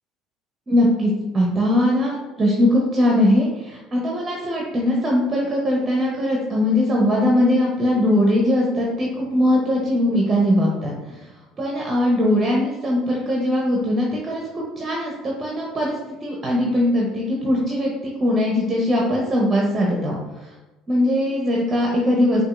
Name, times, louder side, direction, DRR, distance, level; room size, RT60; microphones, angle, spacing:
voice 1, 0.7-11.3 11.6-20.5 20.9-22.4, left 1 dB, 30° right, -2 dB, 0.9 m, -20 dB
5.6 x 2.7 x 2.5 m, 1.1 s
hypercardioid pair, 65°, 0 cm